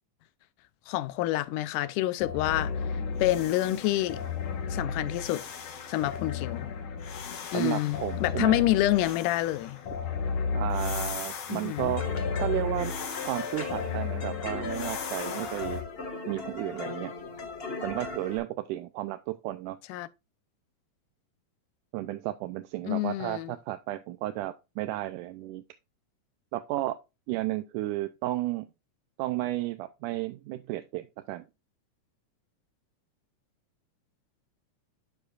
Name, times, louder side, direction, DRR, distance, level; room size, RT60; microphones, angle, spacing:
voice 1, 0.9-2.7 3.2-4.2 4.7-5.4 5.9-6.7 7.5-9.8 11.5-12.0 19.9-20.1 22.9-23.5, left 15 dB, 90° left, 2.2 m, -27 dB
sound 1, 2.2-15.8, left 5 dB, 60° left, 2.0 m, -34 dB
voice 2, 7.5-8.7 10.5-12.0 12.4-12.9 13.2-15.8 16.3-17.1 17.8-19.8 21.9-25.6 26.5-27.0 27.3-28.7 29.2-31.5, right 16 dB, 85° right, 2.1 m, -33 dB
sound 2, 12.0-18.4, left 4 dB, 30° left, 1.1 m, -37 dB
11.0 x 4.9 x 2.4 m
omnidirectional pair, 3.6 m